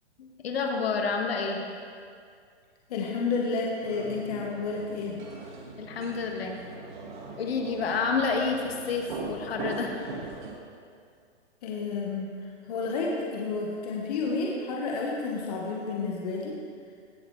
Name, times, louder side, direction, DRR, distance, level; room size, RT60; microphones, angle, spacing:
voice 1, 0.2-1.6 5.8-6.5 7.4-10.0, left 4 dB, 60° left, 1 dB, 1.9 m, -29 dB
voice 2, 2.9-5.2 11.6-12.3 12.7-16.6, left 4 dB, 35° left, -2 dB, 1.4 m, -30 dB
sound 1, 3.8-10.5, right 4 dB, 40° right, 2.0 m, -40 dB
17.5 x 11.5 x 3.3 m, 2.3 s
hypercardioid pair, 165°, 35 cm